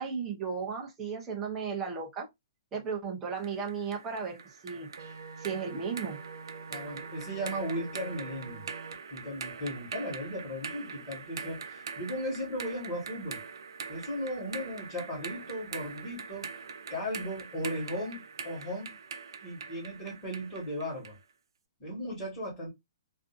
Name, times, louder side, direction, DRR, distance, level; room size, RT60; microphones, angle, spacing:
voice 1, 0.0-2.3 2.7-4.9 5.4-6.2, right 6 dB, 10° right, 0.5 m, -35 dB
sound 1, 3.4-21.2, right 5 dB, 85° right, 0.5 m, -43 dB
sound 2, 5.0-8.9, right 4 dB, 60° right, 1.0 m, -46 dB
voice 2, 6.7-8.6 9.1-13.4 13.9-16.5 16.9-18.9 19.4-21.1 21.8-22.7, equal, 15° left, 1.3 m, -36 dB
2.5 x 2.5 x 2.4 m
hypercardioid pair, 180°, 2 cm